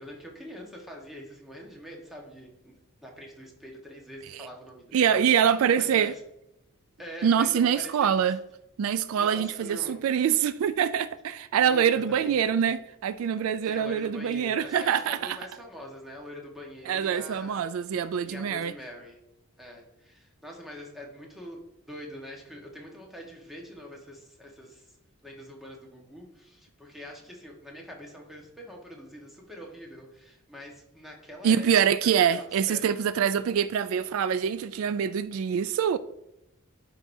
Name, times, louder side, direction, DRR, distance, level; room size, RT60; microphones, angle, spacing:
voice 1, 0.0-6.2 7.0-8.4 9.1-10.0 11.6-12.6 13.6-19.2 19.6-25.0 25.2-31.7 32.0-32.9, equal, ahead, 1.3 m, -44 dB
voice 2, 4.9-6.1 7.2-8.4 8.8-15.4 16.9-18.7 31.4-36.0, right 8 dB, 75° right, 0.3 m, -25 dB
11.5 x 4.8 x 2.7 m
head